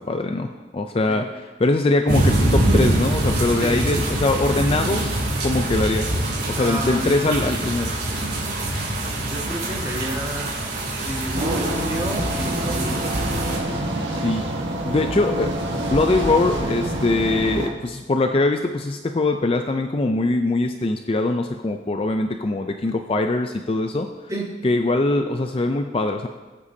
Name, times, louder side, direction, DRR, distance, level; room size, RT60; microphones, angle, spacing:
voice 1, 0.0-6.1 6.5-7.9 14.1-14.5 14.8-24.1 24.6-26.3, left 2 dB, 30° left, 5 dB, 0.4 m, -22 dB
sound 1, 2.1-13.6, right 1 dB, 50° right, 2.9 m, -24 dB
voice 2, 6.6-7.2 9.2-10.5 11.0-13.1 24.3-24.7, right 1 dB, 15° right, -3 dB, 1.8 m, -30 dB
sound 2, 11.3-17.7, right 1 dB, 70° right, 1.5 m, -26 dB
18.5 x 8.3 x 2.8 m, 1.2 s
head